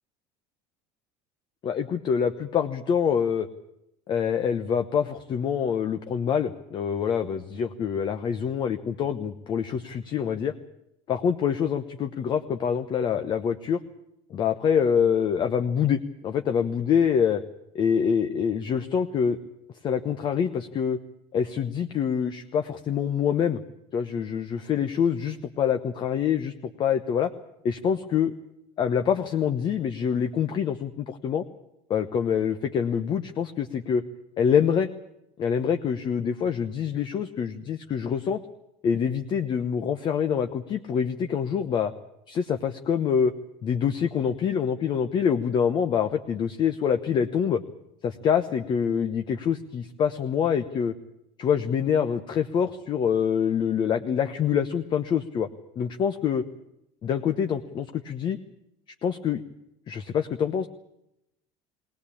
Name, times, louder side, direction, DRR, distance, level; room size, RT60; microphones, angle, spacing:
voice 1, 1.6-3.5 4.1-10.5 11.1-13.8 14.3-17.4 17.7-19.4 19.8-21.0 21.3-23.6 23.9-26.5 26.8-27.3 27.6-28.3 28.8-31.4 31.9-34.0 34.4-34.9 35.4-38.4 38.8-41.9 42.3-43.3 43.6-47.6 48.0-50.9 51.4-55.5 55.8-56.4 57.0-58.4 59.0-59.4 59.9-60.7, left 7 dB, 35° left, 7 dB, 1.0 m, -25 dB
20.0 x 19.5 x 8.6 m, 0.83 s
cardioid pair, 155°, 14 cm